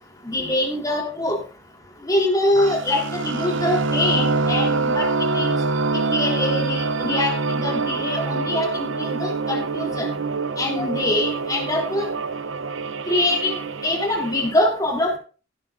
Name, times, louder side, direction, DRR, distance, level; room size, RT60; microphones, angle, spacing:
voice 1, 0.2-1.4 2.1-5.1 5.3-5.5 6.1-10.1 10.6-12.1 13.1-15.2, left 1 dB, 20° left, 1 dB, 3.5 m, -23 dB
sound 1, 2.6-14.5, right 3 dB, 80° right, 0.7 m, -25 dB
17.5 x 9.1 x 2.6 m, 0.34 s
head